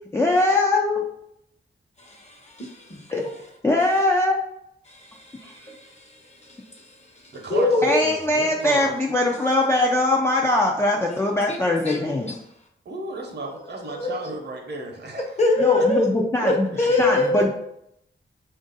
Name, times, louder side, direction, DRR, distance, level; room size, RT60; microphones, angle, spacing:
voice 1, 0.1-1.1 3.1-3.2 3.6-4.3 5.4-5.5 7.8-12.4 15.6-17.5, left 2 dB, 15° left, -1 dB, 0.3 m, -21 dB
voice 2, 2.0-3.3 4.9-8.0 11.1-12.3 13.9-14.2 15.4-16.1 16.4-17.5, left 2 dB, 35° left, 1 dB, 0.8 m, -25 dB
voice 3, 7.3-8.9 12.8-15.4 15.8-15.9 16.7-17.0, right 2 dB, 55° right, 2 dB, 0.8 m, -34 dB
4.3 x 2.5 x 3.9 m, 0.78 s
wide cardioid pair, 155°, 20 cm